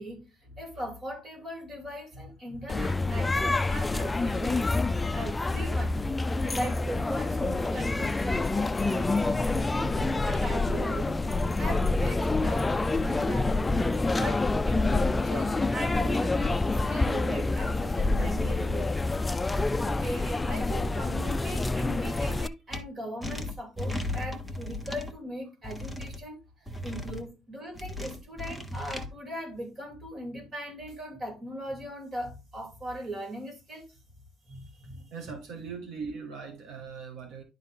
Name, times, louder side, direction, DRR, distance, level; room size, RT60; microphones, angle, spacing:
voice 1, 0.0-5.9 6.4-11.2 11.6-13.6 14.1-19.0 19.7-33.9 34.5-35.0, equal, 30° right, 3.2 m, -39 dB
sound 1, 2.7-22.5, left 3 dB, 15° left, 0.3 m, -27 dB
sound 2, 22.7-22.8 23.2-25.1 25.6-26.2 26.7-27.2 27.7-29.1, left 2 dB, 5° right, 1.1 m, -36 dB
voice 2, 34.9-37.4, right 5 dB, 75° right, 1.9 m, -40 dB
11.0 x 4.1 x 3.6 m
cardioid pair, 140°, 0 cm